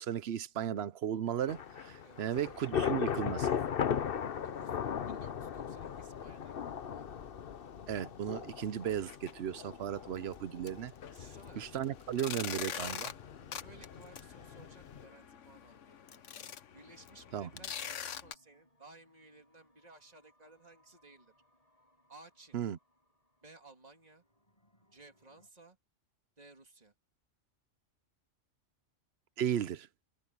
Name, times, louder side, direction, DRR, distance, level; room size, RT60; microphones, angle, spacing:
voice 1, 0.0-3.5 7.9-10.9 11.6-13.1 17.3-17.5 22.5-22.8 29.4-29.9, right 9 dB, 60° right, 0.9 m, -35 dB
Thunder / Rain, 1.5-15.1, left 8 dB, 50° left, 1.0 m, -38 dB
voice 2, 2.0-2.4 4.3-4.8 5.1-7.2 11.1-11.7 13.6-16.0 16.7-21.3 22.1-22.6 23.4-24.2 24.9-25.8 26.4-26.9, right 2 dB, 30° right, 2.8 m, -58 dB
sound 1, 8.9-9.3 9.7-9.8 10.3-10.4 10.7-18.3, left 8 dB, 75° left, 1.3 m, -44 dB
sound 2, 15.3-25.5, left 1 dB, 30° left, 7.4 m, -74 dB
omnidirectional pair, 1.3 m